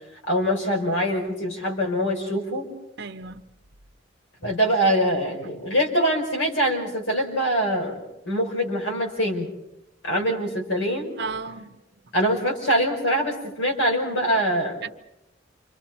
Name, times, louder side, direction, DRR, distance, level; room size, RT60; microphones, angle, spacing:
voice 1, 0.3-2.7 4.4-8.0 8.2-9.5 10.0-11.2 12.1-14.8, equal, 75° left, 5.2 m, -24 dB
voice 2, 3.0-3.4 11.2-11.8 14.8-14.9, right 4 dB, 60° right, 0.9 m, -33 dB
29.0 x 26.0 x 4.4 m
head